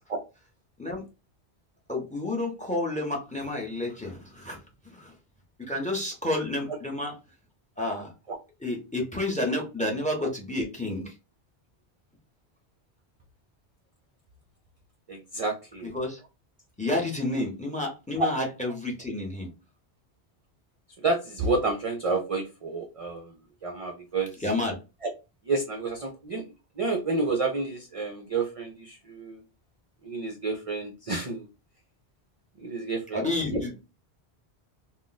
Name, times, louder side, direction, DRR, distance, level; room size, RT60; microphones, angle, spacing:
voice 1, 1.9-4.6 4.9-5.1 5.7-7.2 7.8-8.1 8.6-11.1 15.9-16.2 16.8-19.5 24.4-24.8 33.1-33.8, left 2 dB, 10° left, 1 dB, 0.7 m, -30 dB
voice 2, 15.1-15.9 18.2-18.3 21.0-23.3 23.6-24.3 25.0-25.1 25.5-26.4 26.8-29.4 30.0-31.5 32.6-33.6, right 3 dB, 45° right, 3 dB, 0.4 m, -29 dB
2.4 x 2.2 x 3.9 m, 0.28 s
omnidirectional pair, 1.1 m